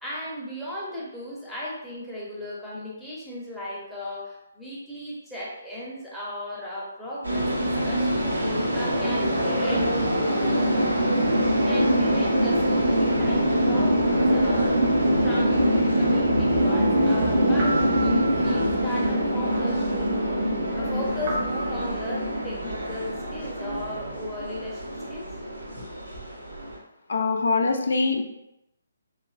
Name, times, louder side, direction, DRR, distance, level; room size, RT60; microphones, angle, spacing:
voice 1, 0.0-8.3 8.7-11.1 11.6-14.7 15.2-20.2 20.7-25.3 25.8-25.9, left 1 dB, ahead, -8 dB, 0.7 m, -36 dB
sound 1, 7.2-26.8, equal, 85° right, 0.7 m, -24 dB
sound 2, 16.7-23.2, right 4 dB, 50° right, 0.7 m, -36 dB
voice 2, 27.1-28.2, left 4 dB, 65° left, 4 dB, 0.4 m, -23 dB
2.9 x 2.4 x 2.4 m, 0.87 s
figure-of-eight pair, 140°, 0 cm